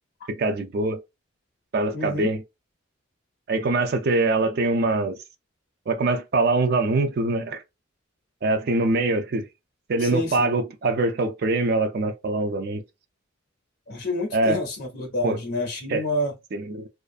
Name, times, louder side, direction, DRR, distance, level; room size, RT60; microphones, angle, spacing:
voice 1, 0.3-1.0 1.7-2.4 3.5-5.2 5.9-7.6 8.4-9.5 9.9-12.8 14.3-14.6 15.2-15.4 15.9-16.0 16.5-16.9, right 2 dB, 50° right, 0.4 m, -23 dB
voice 2, 1.9-2.3 10.0-10.5 13.9-16.3, left 1 dB, 50° left, 0.5 m, -28 dB
2.5 x 2.4 x 2.4 m
head